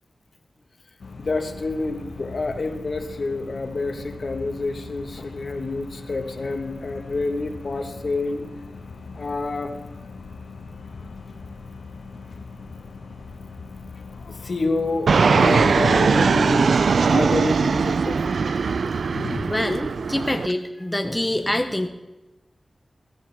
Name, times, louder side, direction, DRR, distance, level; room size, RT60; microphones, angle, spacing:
sound 1, 1.0-16.0, left 4 dB, 90° left, 1.2 m, -40 dB
voice 1, 1.2-8.4 9.1-10.0 14.3-18.4 19.1-19.4, left 3 dB, 55° left, 6 dB, 1.4 m, -28 dB
Fixed-wing aircraft airplane, 15.1-20.5, right 5 dB, 85° right, 0.3 m, -20 dB
voice 2, 19.5-21.9, left 1 dB, 10° left, 5 dB, 0.8 m, -25 dB
14.5 x 14.0 x 3.5 m, 1.0 s
wide cardioid pair, 120°, 0 cm